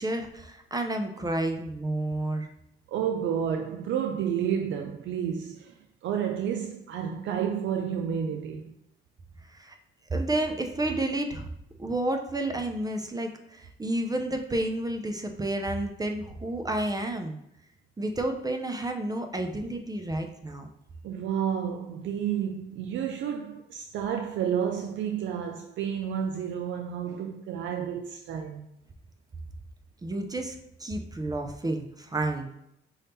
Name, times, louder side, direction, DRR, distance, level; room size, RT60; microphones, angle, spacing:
voice 1, 0.0-2.5 9.5-9.8 10.1-11.5 11.8-17.4 18.0-20.7 30.0-32.6, right 1 dB, 20° right, 0.5 m, -30 dB
voice 2, 2.9-5.7 6.0-8.7 21.0-28.7, right 8 dB, 75° right, 0.4 m, -30 dB
5.4 x 2.7 x 3.5 m
cardioid pair, 90°, 20 cm